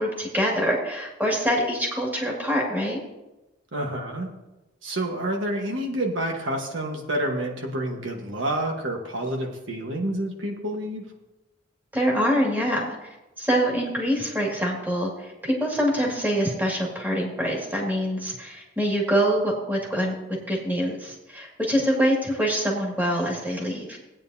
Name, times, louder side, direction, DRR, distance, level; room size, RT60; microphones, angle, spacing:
voice 1, 0.0-3.0 11.9-13.0 13.4-20.1 20.5-24.0, equal, 10° right, -2 dB, 2.0 m, -25 dB
voice 2, 3.7-4.3 4.8-11.1, right 1 dB, 70° right, 2 dB, 1.3 m, -28 dB
16.5 x 8.9 x 2.7 m, 1.0 s
head